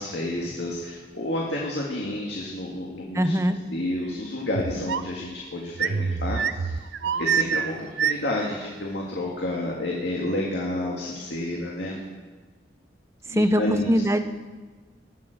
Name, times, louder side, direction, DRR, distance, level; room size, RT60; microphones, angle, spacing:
voice 1, 0.0-12.0 13.3-13.9, left 1 dB, 75° left, -2 dB, 2.0 m, -30 dB
voice 2, 3.1-3.6 13.3-13.6 13.9-14.2, equal, 15° right, 8 dB, 0.7 m, -21 dB
sound 1, 4.5-5.2 5.7-8.5, right 7 dB, 75° right, 0.5 m, -26 dB
19.5 x 7.4 x 6.5 m, 1.4 s
head